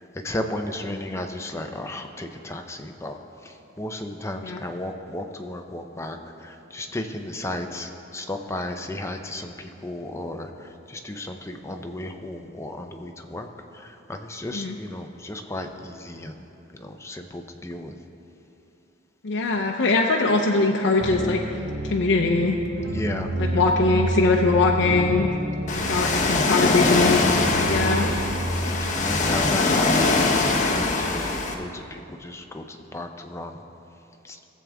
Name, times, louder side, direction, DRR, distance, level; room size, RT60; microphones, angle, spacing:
voice 1, 0.0-3.2 3.4-16.5 16.7-18.0 22.8-23.7 25.7-26.1 27.6-28.2 28.9-33.6 34.2-34.4, left 1 dB, 15° left, 5 dB, 0.6 m, -34 dB
voice 2, 19.2-21.4 21.8-22.5 23.4-25.3 25.7-27.2 27.7-28.1, left 3 dB, 65° left, 0 dB, 0.6 m, -21 dB
sound 1, 21.0-29.3, right 1 dB, 75° right, 1.1 m, -30 dB
Ocean, 25.7-31.5, left 3 dB, 40° left, 0.9 m, -22 dB
18.5 x 7.5 x 3.5 m, 2.9 s
head